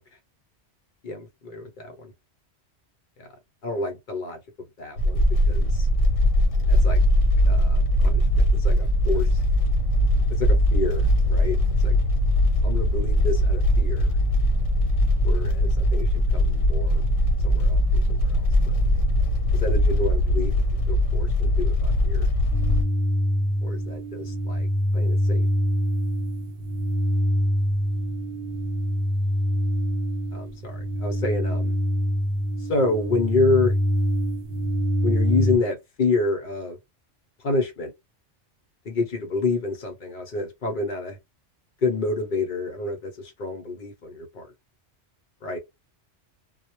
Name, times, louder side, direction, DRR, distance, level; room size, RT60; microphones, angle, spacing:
voice 1, 1.0-2.1 3.2-3.3 3.6-4.4 4.8-5.9 6.7-7.0 7.5-9.4 10.4-11.6 11.8-12.0 12.6-14.2 15.2-17.0 17.4-18.3 19.5-22.3 23.6-24.7 24.9-25.5 30.3-31.7 32.6-33.7 35.0-36.8 37.4-37.9 38.8-41.2 41.8-44.5 45.4-45.6, left 3 dB, 55° left, 0.6 m, -28 dB
sound 1, 5.0-22.8, left 1 dB, 90° left, 0.9 m, -21 dB
sound 2, 7.3-19.2, right 2 dB, 85° right, 1.0 m, -30 dB
sound 3, 22.5-35.6, equal, 65° right, 0.7 m, -25 dB
2.1 x 2.0 x 2.9 m
omnidirectional pair, 1.2 m